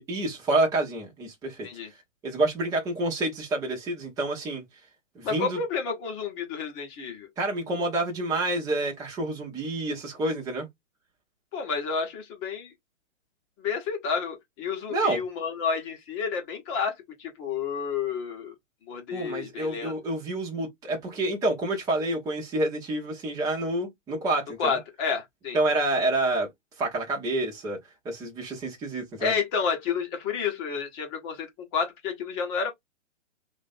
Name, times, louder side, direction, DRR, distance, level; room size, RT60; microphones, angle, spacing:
voice 1, 0.0-1.7 2.2-4.6 5.1-5.6 7.4-10.7 14.9-15.2 19.1-24.8 25.5-26.5 26.8-27.8 28.0-29.3, right 2 dB, 10° right, 0.8 m, -28 dB
voice 2, 5.2-7.3 11.5-12.7 13.6-16.9 17.2-18.5 18.9-19.9 24.6-25.6 29.2-32.7, left 6 dB, 25° left, 1.1 m, -30 dB
2.9 x 2.6 x 4.1 m
hypercardioid pair, 140°, 38 cm